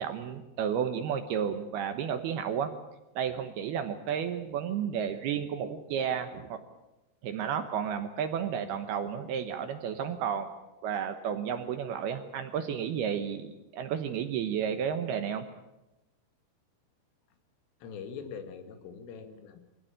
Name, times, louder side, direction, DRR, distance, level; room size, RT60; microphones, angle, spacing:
voice 1, 0.0-2.7 3.2-6.6 7.2-10.6 10.8-15.5, right 8 dB, 70° right, 8 dB, 2.6 m, -32 dB
voice 2, 17.8-19.6, left 6 dB, 90° left, 7 dB, 4.7 m, -43 dB
24.5 x 16.5 x 8.8 m, 1.0 s
omnidirectional pair, 5.6 m